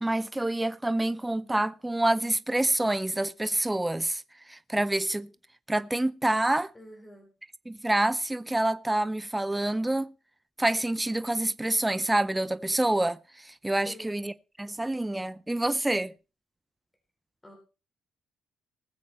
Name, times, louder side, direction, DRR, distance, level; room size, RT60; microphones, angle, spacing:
voice 1, 0.0-5.3 5.7-6.7 7.7-10.1 10.6-14.3 14.6-16.1, right 1 dB, 10° right, 0.6 m, -27 dB
voice 2, 6.7-7.3 13.8-14.3 17.4-17.6, equal, 15° left, 3.7 m, -47 dB
19.5 x 7.6 x 4.2 m
cardioid pair, 90°, 0 cm